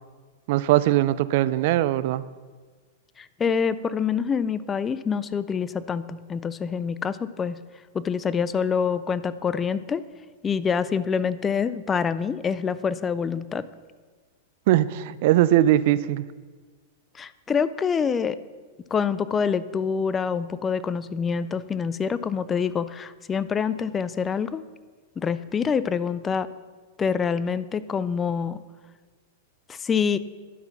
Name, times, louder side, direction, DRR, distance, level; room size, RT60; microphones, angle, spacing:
voice 1, 0.5-2.3 14.7-16.3, right 14 dB, 60° right, 17 dB, 0.3 m, -20 dB
voice 2, 3.2-7.6 7.9-10.0 10.4-13.7 17.1-18.4 18.9-24.6 25.2-26.5 27.0-28.6 29.7-30.2, left 6 dB, 20° left, 16 dB, 0.4 m, -26 dB
11.0 x 5.8 x 5.8 m, 1.4 s
hypercardioid pair, 120°, 0 cm